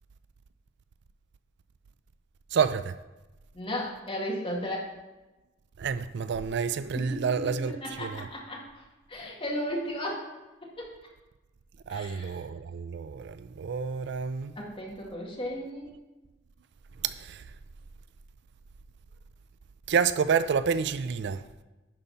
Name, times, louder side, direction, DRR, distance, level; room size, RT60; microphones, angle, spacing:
voice 1, 2.5-3.0 5.8-8.3 11.9-14.5 17.0-17.5 19.9-21.5, right 6 dB, 60° right, 0.4 m, -29 dB
voice 2, 3.5-4.9 7.1-8.8 9.1-10.3 10.6-10.9 11.9-12.4 14.6-15.9, equal, 30° left, 2.0 m, -35 dB
10.5 x 4.2 x 5.7 m
head